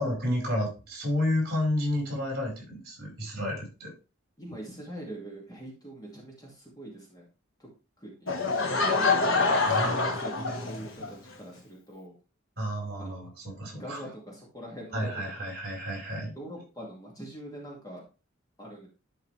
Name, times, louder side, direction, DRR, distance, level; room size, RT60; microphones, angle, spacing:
voice 1, 0.0-3.9 9.6-10.1 10.4-10.6 12.6-14.0 14.9-16.3, left 1 dB, 50° right, -2 dB, 4.6 m, -31 dB
voice 2, 4.4-7.3 7.6-7.7 8.0-9.1 9.8-12.2 13.0-13.3 13.7-15.5 16.3-18.0 18.6-18.9, right 1 dB, 20° left, -2 dB, 2.2 m, -43 dB
Laughter / Crowd, 8.3-11.1, left 3 dB, 75° left, 1.3 m, -26 dB
11.0 x 4.7 x 3.3 m, 0.32 s
head